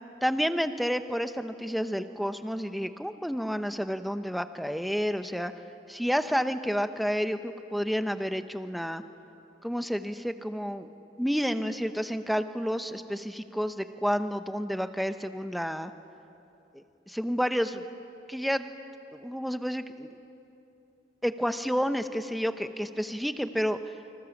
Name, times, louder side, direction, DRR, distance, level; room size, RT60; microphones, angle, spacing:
voice 1, 0.2-5.5 5.9-9.0 9.6-10.9 11.2-15.9 16.7-17.9 18.3-18.7 19.1-20.2 21.2-23.8, equal, ahead, 8 dB, 0.9 m, -30 dB
29.0 x 25.5 x 7.3 m, 2.9 s
head